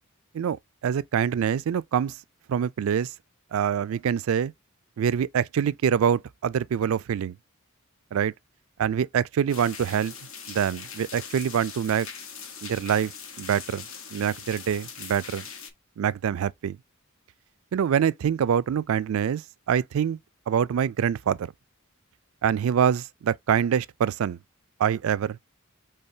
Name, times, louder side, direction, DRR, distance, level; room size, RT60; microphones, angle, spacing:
voice 1, 0.8-2.1 2.5-3.1 3.5-4.5 5.0-7.4 8.1-8.3 8.8-10.1 10.5-12.1 12.6-13.1 13.4-13.8 14.1-15.4 16.0-16.8 17.7-19.4 19.7-20.2 20.5-21.5 22.4-24.4 24.8-25.4, right 8 dB, 75° right, 0.3 m, -25 dB
sound 1, 9.5-15.7, left 6 dB, 65° left, 1.0 m, -41 dB
5.5 x 3.6 x 2.7 m
head